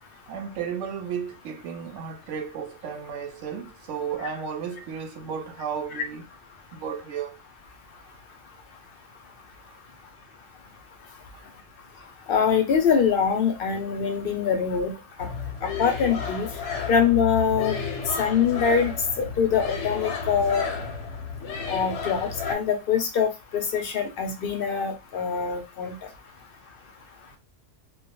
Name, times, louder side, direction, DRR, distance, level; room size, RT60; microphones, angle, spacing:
voice 1, 0.3-6.3 6.7-7.4 11.3-11.4 18.0-18.1, right 7 dB, 80° right, 0.9 m, -34 dB
voice 2, 12.3-14.9 15.2-15.3 15.6-16.5 16.9-17.8 18.2-18.9 19.2-20.7 21.7-26.0, left 7 dB, 60° left, 0.7 m, -24 dB
sound 1, 15.2-22.5, left 5 dB, 75° left, 0.9 m, -32 dB
2.2 x 2.1 x 2.9 m
omnidirectional pair, 1.3 m